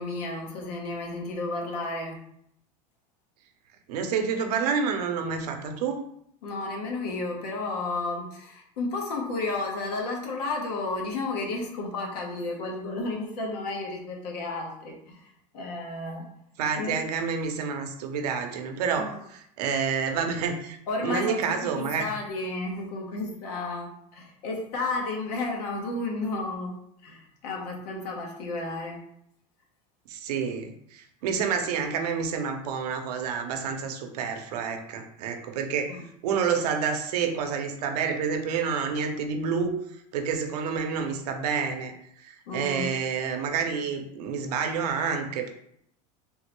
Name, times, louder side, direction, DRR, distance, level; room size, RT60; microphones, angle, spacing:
voice 1, 0.0-2.2 6.4-16.3 16.8-17.0 19.0-19.1 20.9-26.7 27.0-29.0 35.9-36.0 42.5-42.9, left 2 dB, 85° left, 0 dB, 0.9 m, -32 dB
voice 2, 3.9-6.0 16.6-22.1 30.1-39.8 40.1-41.9 42.2-45.5, right 6 dB, 85° right, 5 dB, 0.6 m, -29 dB
3.6 x 2.1 x 3.0 m, 0.71 s
supercardioid pair, 125°, 20 cm